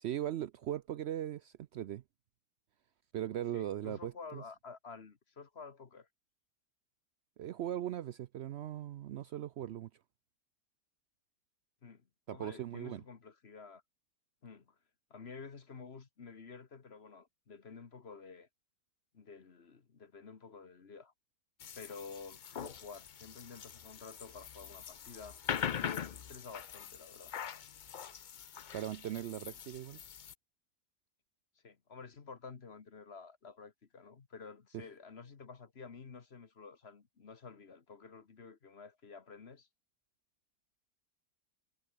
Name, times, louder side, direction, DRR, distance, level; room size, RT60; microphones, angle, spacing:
voice 1, 0.0-2.0 3.1-4.4 7.4-9.9 12.3-13.0 28.7-30.0, right 11 dB, 80° right, 0.5 m, -39 dB
voice 2, 3.5-6.1 11.8-12.0 12.3-13.8 14.4-14.7 15.1-18.5 19.1-21.1 21.7-25.4 25.8-27.3 31.6-39.7, left 5 dB, 40° left, 1.5 m, -51 dB
sound 1, 21.6-30.3, left 8 dB, 65° left, 0.4 m, -43 dB
omnidirectional pair, 1.7 m